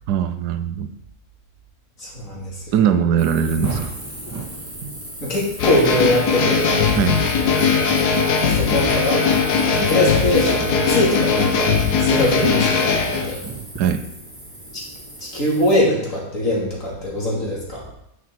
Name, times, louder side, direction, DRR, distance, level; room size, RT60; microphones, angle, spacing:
voice 1, 0.1-0.9 2.7-3.9 4.8-4.9 7.0-7.2 12.4-12.5 13.8-14.1, right 8 dB, 85° right, 10 dB, 1.2 m, -21 dB
voice 2, 2.0-2.6 5.2-6.8 7.4-9.3 9.7-11.7 12.0-13.4 15.2-17.8, left 1 dB, 55° left, -4 dB, 3.2 m, -22 dB
sound 1, 3.2-15.8, right 2 dB, 10° right, 1.5 m, -35 dB
sound 2, 5.6-13.3, left 5 dB, 90° left, 1.6 m, -19 dB
9.5 x 6.3 x 4.6 m, 0.79 s
omnidirectional pair, 1.7 m